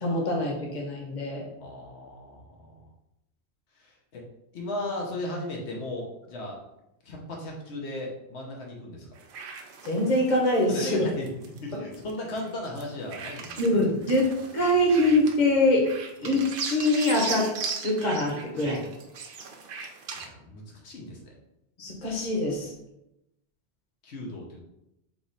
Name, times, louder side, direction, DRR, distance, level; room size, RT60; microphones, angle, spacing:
voice 1, 0.0-1.4 9.8-11.0 11.7-11.8 13.6-15.9 16.2-17.5 17.8-18.8 21.8-22.7, left 1 dB, 45° left, -1 dB, 1.1 m, -24 dB
voice 2, 1.6-2.9 3.8-4.2 4.5-6.6 7.0-9.1 10.7-11.3 11.6-13.8 20.2-21.3 24.0-24.6, left 1 dB, 85° left, -1 dB, 1.1 m, -36 dB
sound 1, 9.2-12.8 13.1-15.5 15.8-20.3, right 5 dB, 60° right, 0.7 m, -38 dB
3.6 x 3.0 x 4.0 m, 0.87 s
omnidirectional pair, 1.1 m